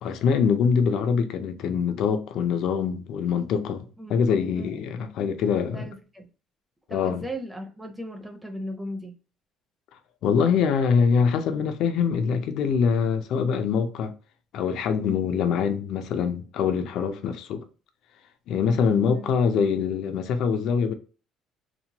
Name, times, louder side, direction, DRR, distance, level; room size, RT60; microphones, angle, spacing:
voice 1, 0.0-5.9 6.9-7.2 10.2-14.1 14.5-17.6 18.5-20.9, left 6 dB, 70° left, 0.4 m, -24 dB
voice 2, 4.5-4.9 5.7-6.3 6.9-9.1 18.8-19.3, equal, 5° right, 0.6 m, -37 dB
2.9 x 2.1 x 2.8 m
cardioid pair, 110°, 0 cm